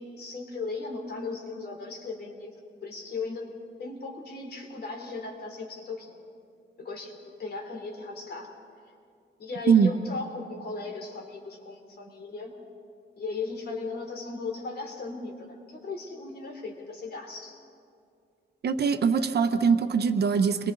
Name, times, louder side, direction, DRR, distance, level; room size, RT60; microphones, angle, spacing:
voice 1, 0.0-2.5 2.8-3.5 3.8-6.2 6.8-8.5 9.4-12.5 13.2-17.6, left 3 dB, 60° left, 1 dB, 3.4 m, -37 dB
voice 2, 18.6-20.7, right 6 dB, 60° right, 9 dB, 1.0 m, -22 dB
29.5 x 23.0 x 4.0 m, 2.4 s
wide cardioid pair, 150°, 19 cm